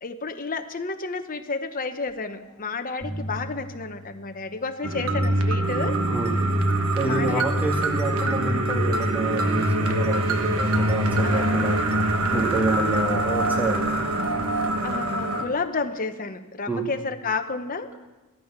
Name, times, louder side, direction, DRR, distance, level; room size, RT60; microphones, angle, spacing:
voice 1, 0.0-6.0 7.1-7.5 11.2-11.9 14.8-17.9, left 4 dB, 40° left, 7 dB, 1.0 m, -31 dB
sound 1, 2.3-2.6 2.8-5.2 5.8-8.3 9.3-11.7 12.2-14.8, equal, 20° left, 2.6 m, -39 dB
sound 2, 4.8-15.5, right 1 dB, 70° right, 1.3 m, -24 dB
voice 2, 5.8-6.3 7.0-11.8 12.3-14.1 16.7-16.8, right 2 dB, 10° right, 0 dB, 2.4 m, -28 dB
15.0 x 13.0 x 5.9 m, 1.2 s
head